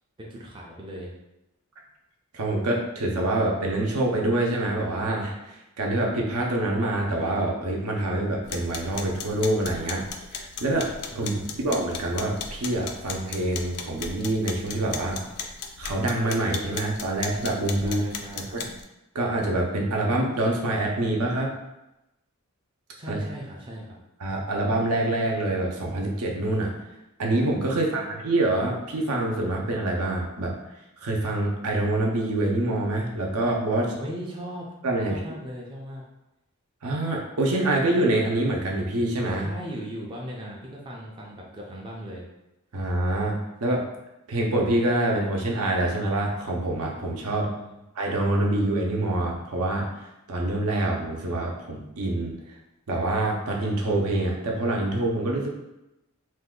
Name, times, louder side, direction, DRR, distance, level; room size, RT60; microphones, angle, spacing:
voice 1, 0.2-1.1 11.1-11.6 17.8-18.6 23.0-24.0 27.7-28.3 33.9-34.7 35.1-36.0 39.4-42.2 47.3-47.8, equal, 20° right, -3 dB, 0.4 m, -38 dB
voice 2, 2.3-10.9 11.1-15.2 15.8-18.0 18.5-18.7 19.1-21.5 23.1-23.2 24.2-26.7 27.2-30.5 31.0-33.9 34.8-35.4 36.8-39.5 42.7-43.8 44.3-47.5 47.9-52.6 52.9-55.5, right 1 dB, 80° right, -1 dB, 0.6 m, -26 dB
sound 1, 8.4-18.8, left 5 dB, 80° left, 0.4 m, -37 dB
2.6 x 2.2 x 3.6 m, 0.93 s
head